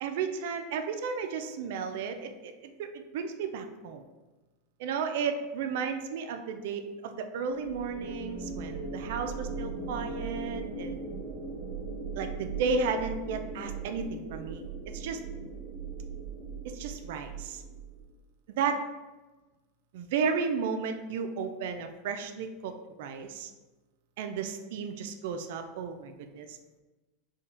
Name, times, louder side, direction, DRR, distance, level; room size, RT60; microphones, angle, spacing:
voice 1, 0.0-4.0 4.8-11.0 12.1-14.7 14.9-15.2 16.6-17.6 18.5-18.8 19.9-23.5 24.2-26.6, right 5 dB, 70° right, 6 dB, 0.4 m, -33 dB
sound 1, 7.6-18.1, right 4 dB, 50° right, 1.1 m, -39 dB
4.5 x 2.2 x 3.4 m, 1.2 s
supercardioid pair, 130°, 0 cm